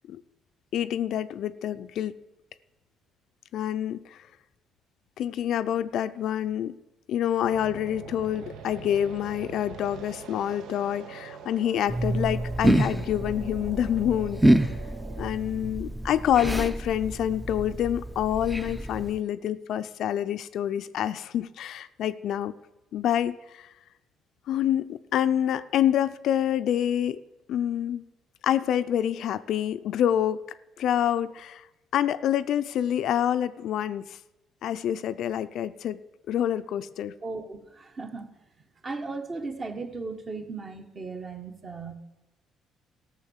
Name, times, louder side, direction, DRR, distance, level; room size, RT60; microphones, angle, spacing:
voice 1, 0.7-2.2 3.5-4.2 5.2-6.8 7.1-14.4 15.2-22.5 22.9-23.7 24.5-27.2 27.5-28.0 28.4-30.5 30.8-31.6 31.9-34.2 34.6-36.0 36.3-37.1, left 10 dB, 70° left, 12 dB, 0.5 m, -27 dB
sound 1, 7.4-15.3, right 6 dB, 80° right, 1.0 m, -44 dB
sound 2, 11.9-19.2, right 1 dB, 5° right, 0.6 m, -27 dB
voice 2, 37.2-38.4 38.8-41.9, right 3 dB, 35° right, 6 dB, 1.3 m, -36 dB
14.0 x 6.4 x 7.2 m, 1.0 s
cardioid pair, 100°, 0 cm